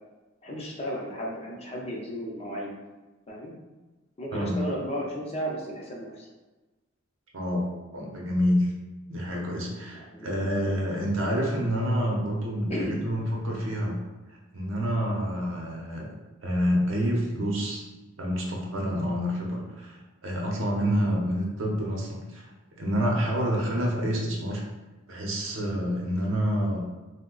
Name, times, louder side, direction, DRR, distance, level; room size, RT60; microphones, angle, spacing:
voice 1, 0.4-2.7 3.3-3.5 4.2-6.3 9.9-10.9 12.7-13.0, equal, 30° left, -2 dB, 0.5 m, -34 dB
voice 2, 7.3-7.7 7.9-8.7 9.1-14.0 14.3-16.1 16.4-17.8 18.2-22.4 22.8-24.6 25.1-26.8, equal, 70° right, -1 dB, 0.7 m, -28 dB
2.7 x 2.1 x 3.8 m, 1.2 s
head